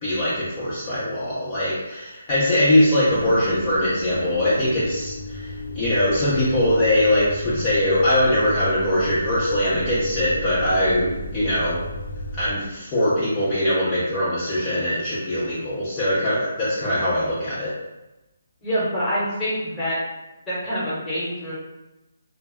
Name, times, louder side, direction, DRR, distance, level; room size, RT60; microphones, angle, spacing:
voice 1, 0.0-11.8 12.4-17.7, left 1 dB, 25° left, -10 dB, 0.6 m, -22 dB
sound 1, 3.0-12.5, left 1 dB, 65° left, 0.5 m, -34 dB
voice 2, 18.6-20.0 20.5-21.5, equal, 10° left, -10 dB, 1.0 m, -26 dB
2.1 x 2.0 x 3.4 m, 1.0 s
figure-of-eight pair, 155°, 0 cm